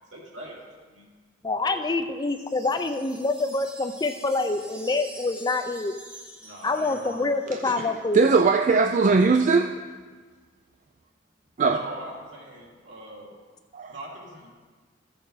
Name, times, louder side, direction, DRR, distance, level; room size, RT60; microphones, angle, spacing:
voice 1, 0.0-1.1 1.6-1.8 6.4-7.9 11.6-13.3 13.9-14.5, right 1 dB, 70° right, -4 dB, 2.9 m, -42 dB
voice 2, 1.4-5.9 6.6-8.3, left 3 dB, 20° left, 8 dB, 0.4 m, -26 dB
sound 1, 2.2-7.7, right 1 dB, 5° right, 0.9 m, -46 dB
voice 3, 7.5-7.9 8.1-9.8 11.6-11.8 13.7-13.9, right 4 dB, 40° right, 6 dB, 0.4 m, -20 dB
14.5 x 6.7 x 4.0 m, 1.4 s
head